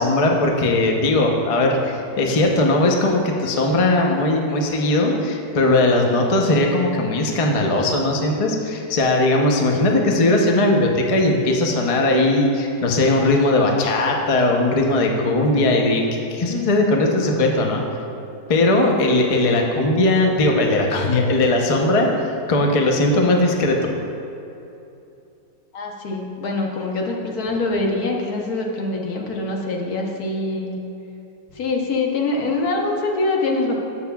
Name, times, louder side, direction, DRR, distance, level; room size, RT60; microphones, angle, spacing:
voice 1, 0.0-17.8 18.5-22.1 22.5-23.9, left 2 dB, 40° left, 1 dB, 0.5 m, -19 dB
voice 2, 25.7-30.8 31.6-33.7, left 2 dB, 75° left, 0 dB, 1.4 m, -24 dB
14.0 x 6.9 x 2.3 m, 2.8 s
omnidirectional pair, 1.6 m